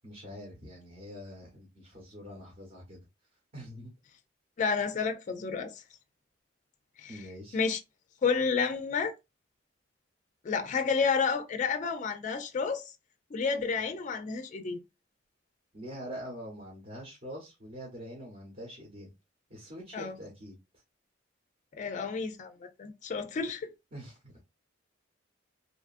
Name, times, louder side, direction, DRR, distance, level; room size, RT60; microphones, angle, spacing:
voice 1, 0.0-3.0 3.5-3.9 7.1-7.6 15.7-19.1 19.5-20.6 23.9-24.4, equal, 40° right, 0.9 m, -44 dB
voice 2, 4.6-5.7 7.0-7.2 7.5-7.8 8.2-9.1 10.4-12.9 13.3-14.8 19.9-20.1 21.7-23.7, left 5 dB, 40° left, 0.3 m, -30 dB
2.8 x 2.4 x 2.4 m
head